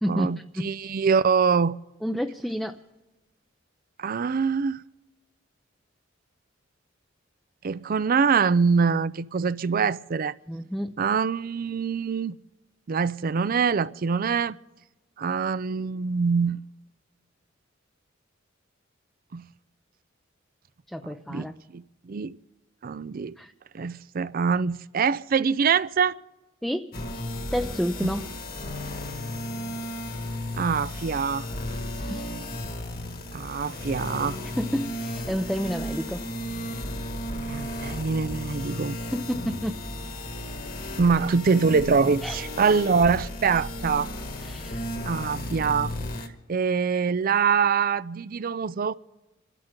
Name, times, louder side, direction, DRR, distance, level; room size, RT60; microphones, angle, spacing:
voice 1, 0.1-1.7 4.0-4.8 7.6-10.3 11.0-12.4 12.9-14.6 15.2-16.6 19.3-19.4 21.0-21.5 21.7-22.4 22.8-23.4 23.7-26.2 28.0-28.1 30.5-31.5 33.3-34.4 37.5-39.0 41.0-44.1 45.0-45.9 46.5-48.9, right 5 dB, 45° right, 0.4 m, -24 dB
voice 2, 2.0-2.8 10.5-11.0 20.9-21.5 23.4-23.5 26.6-26.9 27.5-28.2 32.0-32.3 34.4-36.2 39.1-39.8 42.2-42.4 44.4-44.9, equal, ahead, 0.5 m, -30 dB
sound 1, 26.9-46.3, left 1 dB, 45° left, 1.8 m, -34 dB
27.0 x 13.0 x 3.8 m
head